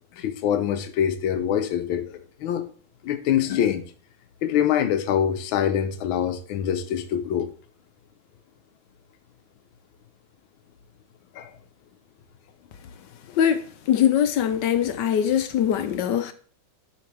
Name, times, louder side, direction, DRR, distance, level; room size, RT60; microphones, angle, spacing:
voice 1, 0.2-2.6 3.0-3.8 4.4-7.5 11.3-11.5, left 9 dB, 85° left, 1.6 m, -24 dB
voice 2, 13.9-16.3, left 9 dB, 70° left, 1.2 m, -22 dB
10.5 x 5.8 x 3.3 m
omnidirectional pair, 2.2 m